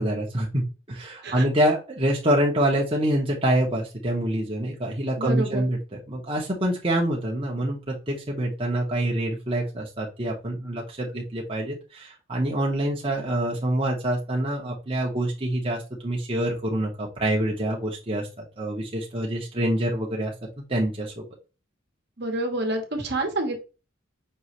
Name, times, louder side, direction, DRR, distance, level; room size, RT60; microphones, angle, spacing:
voice 1, 0.0-20.3 20.7-21.2, right 1 dB, 30° right, -2 dB, 0.9 m, -26 dB
voice 2, 5.2-5.6 22.2-23.6, right 2 dB, 55° right, 3 dB, 1.1 m, -28 dB
5.4 x 3.0 x 3.0 m, 0.31 s
head